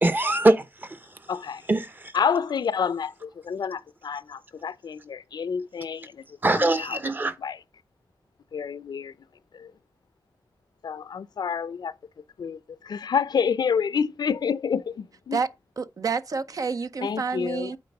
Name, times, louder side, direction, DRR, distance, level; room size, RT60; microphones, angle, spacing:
voice 1, 0.0-1.3 1.7-2.2 6.4-7.4, right 2 dB, 25° right, 0.9 m, -23 dB
voice 2, 1.3-1.6 2.1-6.2 6.6-7.0 7.4-7.6 8.5-9.1 9.5-9.7 10.8-11.9 12.4-15.4 17.0-17.7, left 6 dB, 75° left, 0.5 m, -28 dB
voice 3, 15.8-17.8, right 5 dB, 55° right, 0.6 m, -28 dB
8.7 x 4.2 x 5.3 m
wide cardioid pair, 125°, 7 cm